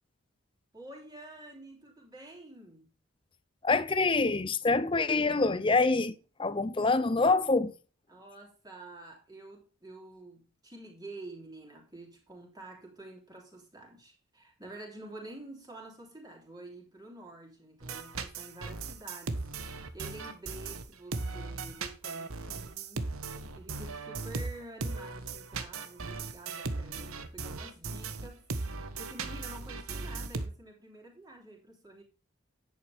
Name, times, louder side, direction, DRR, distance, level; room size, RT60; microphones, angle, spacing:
voice 1, 0.7-2.9 8.1-19.4 19.7-23.1 23.5-28.5 29.0-32.0, right 2 dB, 20° right, 3.3 m, -48 dB
voice 2, 3.6-7.7, left 3 dB, 25° left, 0.5 m, -26 dB
sound 1, 17.8-30.5, right 3 dB, 90° right, 1.4 m, -37 dB
10.5 x 8.3 x 3.5 m
head